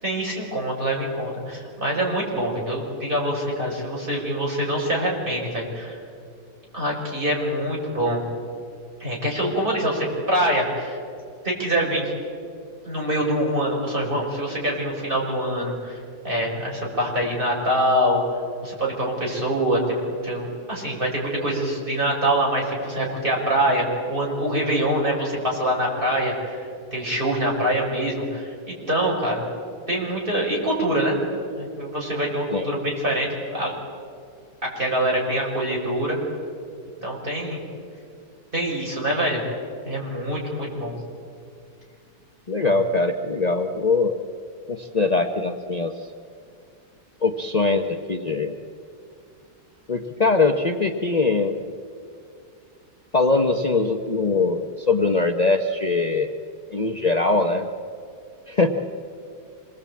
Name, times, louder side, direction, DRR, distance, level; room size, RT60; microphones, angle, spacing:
voice 1, 0.0-6.0 6.7-8.2 9.0-11.0 11.4-12.1 12.8-16.0 16.2-18.2 18.6-29.5 29.9-31.2 31.6-33.7 34.6-36.2 37.0-37.6 38.5-39.4 39.8-41.0 42.6-42.8, right 1 dB, 25° right, -3 dB, 6.0 m, -25 dB
voice 2, 42.5-44.2 44.7-46.0 47.2-48.5 49.9-51.6 53.1-56.3 56.7-57.7 58.5-58.7, left 3 dB, 50° left, 4 dB, 0.4 m, -22 dB
26.5 x 20.5 x 8.6 m, 2.4 s
omnidirectional pair, 2.2 m